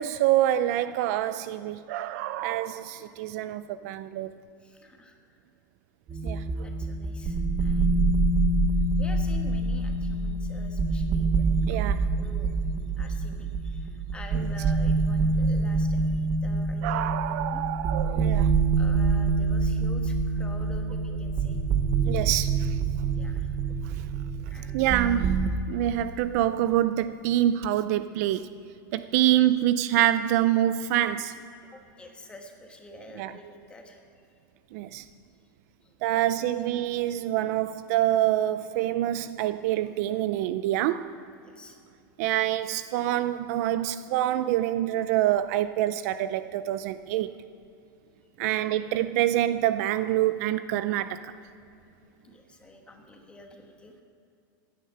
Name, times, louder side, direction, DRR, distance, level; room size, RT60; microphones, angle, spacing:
voice 1, 0.0-4.3 6.2-6.4 11.7-12.0 16.8-18.5 22.1-22.8 23.8-24.0 24.7-25.4 25.7-28.5 28.9-31.3 33.2-33.3 34.7-35.1 36.0-41.1 42.2-47.4 48.4-51.2, right 13 dB, 45° right, 13 dB, 0.4 m, -26 dB
voice 2, 4.6-5.2 6.1-6.2 6.6-8.2 9.0-11.9 12.2-12.5 13.0-17.6 18.8-21.6 23.1-23.6 24.5-24.9 31.6-34.0 35.8-36.3 41.4-41.8 48.4-48.7 52.2-54.0, left 1 dB, 10° left, 3 dB, 1.3 m, -48 dB
sound 1, 6.1-25.5, right 3 dB, 20° right, 0.8 m, -26 dB
16.0 x 10.0 x 5.6 m, 2.7 s
supercardioid pair, 160°, 12 cm